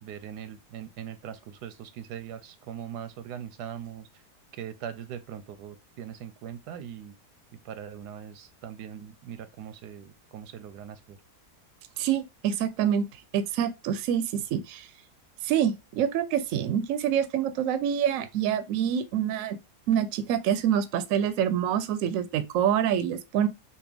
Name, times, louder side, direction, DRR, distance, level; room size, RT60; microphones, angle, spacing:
voice 1, 0.0-4.1 4.6-7.1 7.6-11.2, right 9 dB, 85° right, 1.2 m, -41 dB
voice 2, 12.0-13.1 13.3-14.2 14.5-14.9 15.4-19.6 19.9-23.5, right 9 dB, 70° right, 0.8 m, -26 dB
4.2 x 2.3 x 3.4 m
omnidirectional pair, 1.7 m